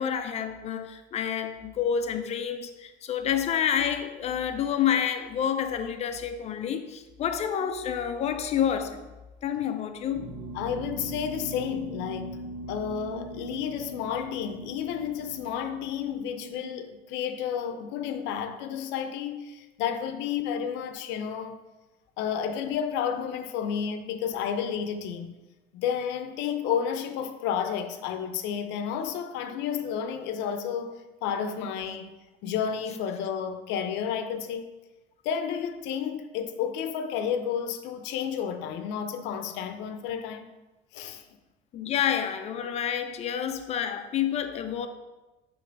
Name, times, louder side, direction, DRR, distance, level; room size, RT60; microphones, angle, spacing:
voice 1, 0.0-9.1 9.4-10.3 41.7-44.9, left 8 dB, 35° left, 0.5 m, -28 dB
sound 1, 10.1-16.7, right 1 dB, 50° right, 0.7 m, -40 dB
voice 2, 10.5-12.4 12.7-21.6 22.2-25.3 25.7-32.1 32.4-34.7 35.2-40.5 40.9-41.2, left 8 dB, 75° left, 0.7 m, -31 dB
6.7 x 3.2 x 5.2 m
cardioid pair, 155°, 19 cm